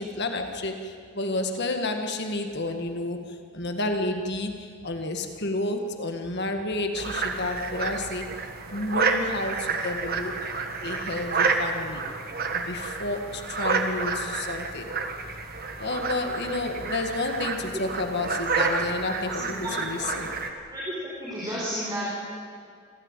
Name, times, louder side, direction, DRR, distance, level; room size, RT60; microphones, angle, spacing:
voice 1, 0.0-8.3 8.7-10.4 10.8-12.0 12.5-14.9 15.8-20.3, left 2 dB, 50° left, 5 dB, 1.7 m, -30 dB
sound 1, 6.9-20.5, right 4 dB, 40° right, 1.6 m, -30 dB
voice 2, 19.4-19.7 20.7-22.1, equal, 20° right, -7 dB, 4.6 m, -32 dB
26.5 x 14.5 x 9.0 m, 2.2 s
head